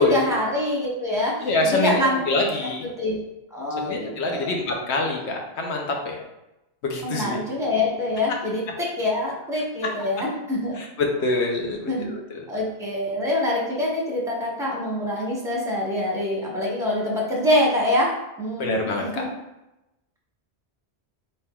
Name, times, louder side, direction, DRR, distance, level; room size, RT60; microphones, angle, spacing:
voice 1, 0.0-2.2 3.0-3.2 3.5-4.5 7.0-10.8 11.9-12.1 12.5-18.8 19.1-19.3, left 1 dB, 5° right, -4 dB, 0.7 m, -25 dB
voice 2, 1.4-2.8 3.8-6.2 6.8-7.4 10.8-12.4 18.6-19.2, left 2 dB, 80° left, 1 dB, 0.9 m, -25 dB
4.2 x 3.3 x 2.3 m, 0.94 s
omnidirectional pair, 1.1 m